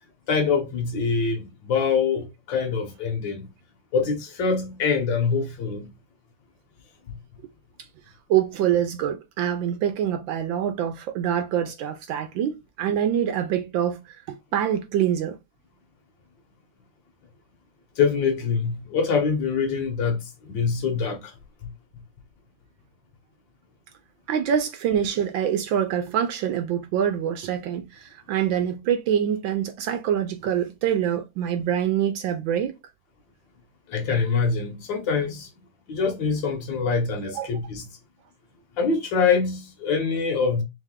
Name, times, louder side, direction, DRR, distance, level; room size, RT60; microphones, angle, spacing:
voice 1, 0.3-3.5 3.9-5.9 7.1-7.2 18.0-21.3 21.6-21.7 33.9-35.5 35.9-37.9 38.8-40.6, left 5 dB, 65° left, 1.4 m, -24 dB
voice 2, 8.3-14.0 14.3-15.4 24.3-32.8 37.3-37.5, right 9 dB, 75° right, 1.2 m, -25 dB
3.6 x 3.2 x 3.6 m
omnidirectional pair, 2.4 m